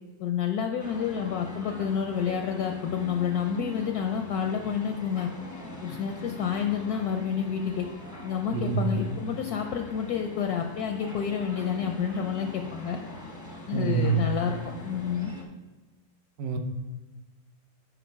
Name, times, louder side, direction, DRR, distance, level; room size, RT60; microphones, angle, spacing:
voice 1, 0.2-5.3 5.8-7.9 8.2-13.0 13.7-14.6 14.8-15.3, left 7 dB, 70° left, 4 dB, 0.9 m, -29 dB
sound 1, 0.8-15.4, left 1 dB, 25° left, 0.4 m, -42 dB
voice 2, 8.5-8.9 13.7-14.2 16.4-16.6, right 7 dB, 65° right, 6 dB, 1.0 m, -26 dB
7.9 x 5.0 x 4.6 m, 1.2 s
omnidirectional pair, 2.0 m